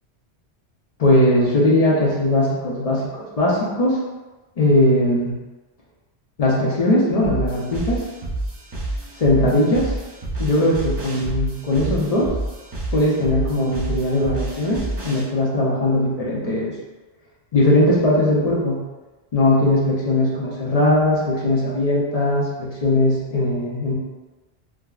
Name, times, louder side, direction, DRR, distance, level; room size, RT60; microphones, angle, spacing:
voice 1, 1.0-4.0 4.6-5.3 6.4-8.0 9.2-9.9 10.4-12.3 12.9-16.7 17.5-18.8 19.3-23.9, left 1 dB, 45° left, -5 dB, 0.5 m, -19 dB
sound 1, 7.2-15.2, right 2 dB, 35° right, 0.4 m, -29 dB
3.5 x 2.0 x 2.3 m, 1.2 s
omnidirectional pair, 1.1 m